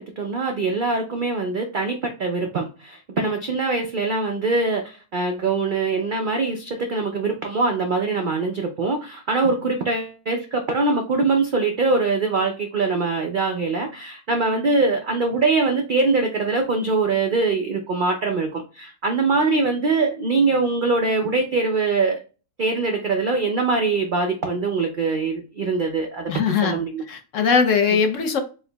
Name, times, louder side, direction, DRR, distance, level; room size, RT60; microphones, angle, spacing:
voice 1, 0.0-22.2 22.6-26.3 26.6-27.0, right 3 dB, 80° right, 0.4 m, -23 dB
voice 2, 26.3-26.8 27.1-28.4, left 6 dB, 65° left, 1.0 m, -20 dB
4.4 x 3.8 x 2.2 m
omnidirectional pair, 1.6 m